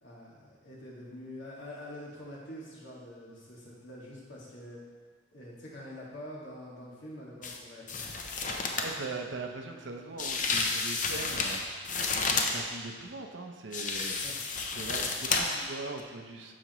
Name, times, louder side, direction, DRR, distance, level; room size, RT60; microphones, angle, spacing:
voice 1, 0.0-4.8 5.3-8.4 14.2-14.3, left 1 dB, 85° left, -5 dB, 2.1 m, -45 dB
sound 1, 7.4-7.6 7.9-8.9 10.2-12.6 13.7-15.7 16.0-16.1, left 4 dB, 45° left, 0.7 m, -31 dB
voice 2, 8.8-14.2 14.8-16.5, right 3 dB, 80° right, 3 dB, 0.8 m, -41 dB
12.5 x 5.0 x 3.1 m, 1.5 s
head